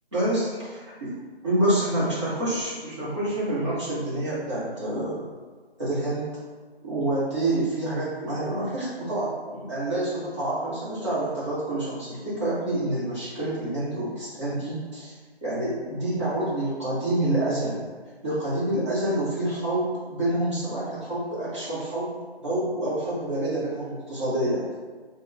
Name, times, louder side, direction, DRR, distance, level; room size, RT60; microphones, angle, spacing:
voice 1, 0.1-1.1 1.4-5.2 5.8-6.3 6.8-15.1 15.4-17.8 18.2-22.1 22.4-24.8, right 1 dB, 25° right, -11 dB, 1.2 m, -27 dB
3.8 x 2.5 x 3.4 m, 1.5 s
figure-of-eight pair, 160°, 32 cm